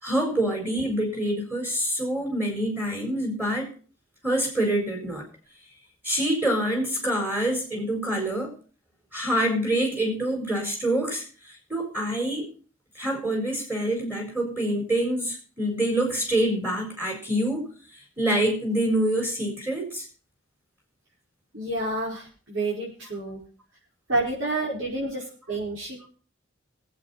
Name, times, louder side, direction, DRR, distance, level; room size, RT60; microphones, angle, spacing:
voice 1, 0.0-3.7 4.2-5.2 6.0-8.5 9.1-11.2 11.7-12.5 12.9-17.7 18.2-20.0, right 1 dB, 10° right, -1 dB, 4.4 m, -26 dB
voice 2, 21.5-23.4 24.1-26.1, right 2 dB, 75° right, -6 dB, 5.3 m, -29 dB
21.5 x 8.3 x 4.2 m, 0.38 s
head